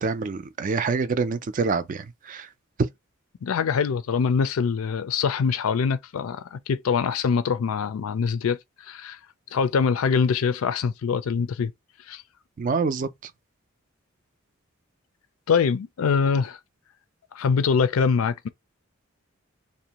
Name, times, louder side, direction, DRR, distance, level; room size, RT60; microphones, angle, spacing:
voice 1, 0.0-2.5 2.8-2.9 12.6-13.1, right 4 dB, 40° right, 0.3 m, -26 dB
voice 2, 3.4-9.2 9.5-11.7 12.1-12.2 15.5-16.6 17.3-18.5, left 6 dB, 85° left, 0.4 m, -24 dB
2.6 x 2.1 x 2.9 m
head